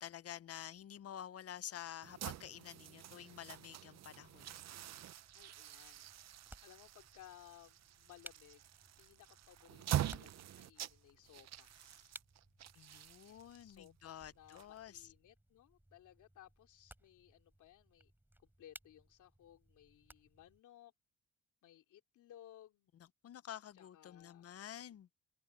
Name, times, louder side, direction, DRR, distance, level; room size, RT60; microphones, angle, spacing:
voice 1, 0.0-4.6 12.7-15.1 22.9-25.1, left 10 dB, 50° left, 0.8 m, -50 dB
sound 1, 2.0-15.1, right 12 dB, 60° right, 0.8 m, -45 dB
sound 2, 4.2-20.6, right 1 dB, 5° right, 4.6 m, -62 dB
voice 2, 5.3-6.1 6.6-8.6 9.0-12.1 13.1-18.1 18.4-20.9 21.6-22.9 23.8-24.4, left 12 dB, 80° left, 3.3 m, -61 dB
open air
cardioid pair, 90°, 30 cm